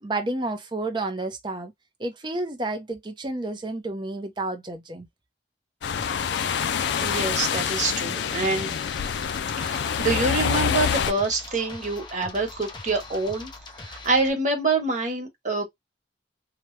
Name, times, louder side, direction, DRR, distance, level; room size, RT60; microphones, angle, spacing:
voice 1, 0.0-1.7 2.0-5.1, right 2 dB, 25° right, 0.7 m, -30 dB
sound 1, 5.8-11.1, left 7 dB, 75° left, 0.4 m, -26 dB
sound 2, 6.0-14.3, left 3 dB, 25° left, 0.7 m, -42 dB
voice 2, 6.9-8.7 9.6-13.5 13.7-15.7, right 3 dB, 45° right, 1.2 m, -26 dB
3.0 x 2.1 x 3.2 m
head